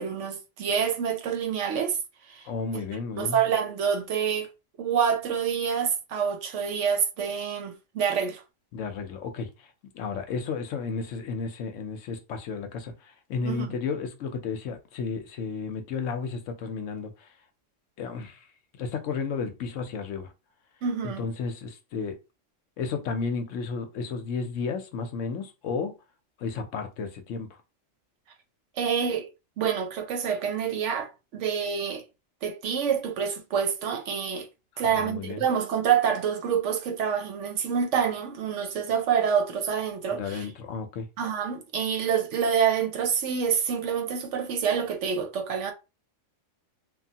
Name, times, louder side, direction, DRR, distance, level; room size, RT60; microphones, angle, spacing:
voice 1, 0.0-2.0 2.3-2.5 3.2-4.5 4.8-8.4 13.4-13.7 20.8-21.2 28.8-29.3 29.6-32.0 32.4-34.5 34.8-40.5 41.2-45.7, right 7 dB, 70° right, 0.9 m, -27 dB
voice 2, 2.4-3.4 8.7-17.3 18.0-18.5 18.8-20.3 21.0-22.2 22.8-26.0 26.4-27.5 34.8-35.4 40.1-41.1, left 5 dB, 75° left, 1.0 m, -33 dB
3.0 x 2.4 x 2.7 m
omnidirectional pair, 1.3 m